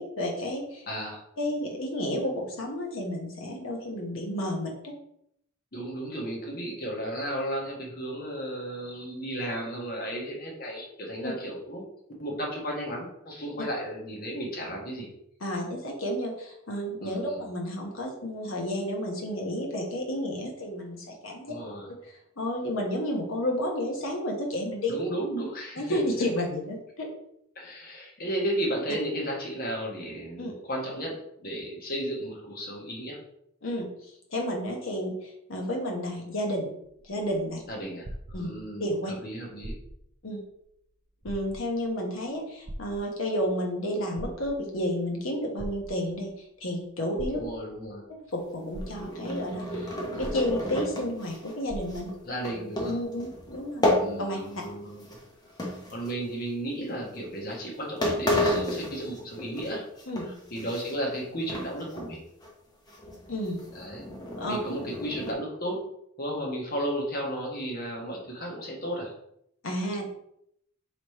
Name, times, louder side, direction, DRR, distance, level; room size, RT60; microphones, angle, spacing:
voice 1, 0.0-0.9 1.4-4.9 11.2-11.3 15.4-21.5 21.9-22.0 22.4-25.0 25.8-27.1 30.4-30.5 33.6-33.9 34.3-36.7 37.0-37.6 38.3-38.5 38.8-39.1 40.2-40.4 41.2-46.3 46.6-47.4 48.1-52.1 52.9-53.9 54.2-54.4 60.1-60.3 63.3-63.6 64.4-64.6 69.6-70.1, equal, 85° left, 1 dB, 1.1 m, -31 dB
voice 2, 0.9-1.2 5.7-11.9 12.2-15.1 17.0-17.4 21.5-21.9 24.9-26.0 27.5-33.2 37.7-39.8 47.3-48.0 52.2-53.0 54.0-55.2 55.9-60.1 60.5-62.2 63.7-64.0 64.5-65.8 66.2-69.1, right 1 dB, 50° left, -1 dB, 1.2 m, -34 dB
sound 1, 36.8-38.9 39.5-40.2 40.6-40.7 41.2-41.9 42.7-43.5 44.0-44.8 45.6-46.3 47.2-47.9 48.4-48.5 48.7-49.4 50.2-51.0 51.3-51.4 51.7-52.3 53.0-53.1, right 1 dB, 25° right, 0.3 m, -40 dB
sound 2, 48.6-54.7 55.0-56.5 57.1-57.3 57.7-57.8 58.0-59.7 60.0-61.2 61.5-62.1 62.4-62.5 62.9-65.3, left 1 dB, 20° left, 0.8 m, -32 dB
3.2 x 3.2 x 4.1 m, 0.74 s
head